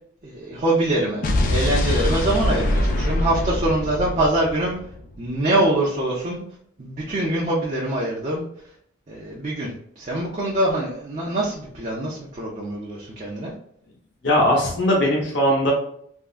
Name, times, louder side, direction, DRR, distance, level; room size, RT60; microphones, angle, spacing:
voice 1, 0.2-1.2 1.5-4.8 5.2-6.4 6.8-8.4 9.1-9.7 10.0-13.5, right 1 dB, 35° right, -4 dB, 0.5 m, -24 dB
Explosion, 1.2-5.3, left 1 dB, 40° left, 0.3 m, -23 dB
voice 2, 14.2-15.7, equal, 65° left, -2 dB, 0.8 m, -19 dB
3.5 x 2.1 x 2.4 m, 0.68 s
head